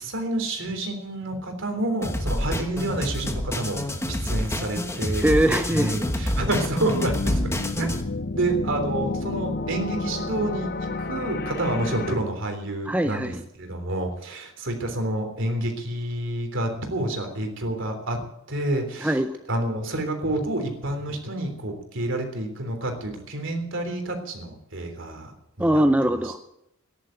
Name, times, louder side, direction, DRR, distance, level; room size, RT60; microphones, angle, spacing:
voice 1, 0.0-3.8 4.1-5.3 5.7-7.5 7.8-7.9 8.3-18.2 18.5-19.2 19.5-25.3 25.6-25.8, right 1 dB, 60° right, 5 dB, 3.5 m, -29 dB
sound 1, 2.0-8.0, left 1 dB, 10° left, 1.3 m, -28 dB
sound 2, 5.2-12.2, left 2 dB, 45° left, 0.7 m, -31 dB
voice 2, 5.2-5.9 12.9-13.4 19.0-19.3 25.6-26.4, right 1 dB, 5° right, 7 dB, 0.6 m, -21 dB
14.0 x 11.0 x 8.9 m, 0.81 s
head